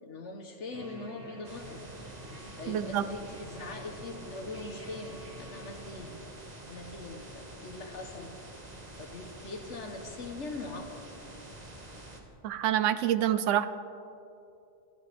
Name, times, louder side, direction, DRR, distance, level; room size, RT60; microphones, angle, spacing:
voice 1, 0.0-1.8 2.6-6.2 6.7-8.3 9.0-11.1, left 3 dB, 75° left, 3 dB, 1.5 m, -41 dB
sound 1, 0.7-6.2, right 1 dB, 60° right, 2.9 m, -49 dB
sound 2, 1.4-12.2, right 1 dB, 35° right, 1.9 m, -47 dB
voice 2, 2.7-3.0 12.4-13.7, right 11 dB, 80° right, 12 dB, 1.0 m, -27 dB
30.0 x 13.0 x 3.5 m, 2.8 s
omnidirectional pair, 1.3 m